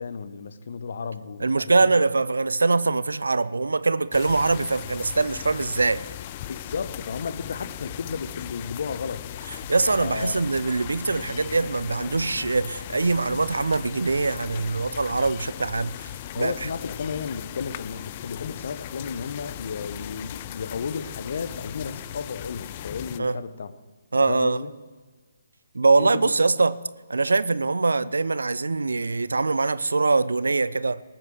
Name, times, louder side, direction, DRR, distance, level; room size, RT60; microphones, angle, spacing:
voice 1, 0.0-1.9 5.8-5.9 6.5-9.2 10.0-10.3 16.3-23.7 24.2-24.7 26.0-26.4, left 5 dB, 55° left, 0.9 m, -33 dB
voice 2, 1.4-6.0 9.7-16.1 16.4-16.7 23.2-23.4 24.1-24.6 25.7-26.8 27.1-31.0, right 3 dB, 70° right, 0.6 m, -23 dB
sound 1, 4.1-23.2, left 12 dB, 30° left, 0.5 m, -38 dB
19.5 x 8.7 x 6.2 m
figure-of-eight pair, 135°, 0 cm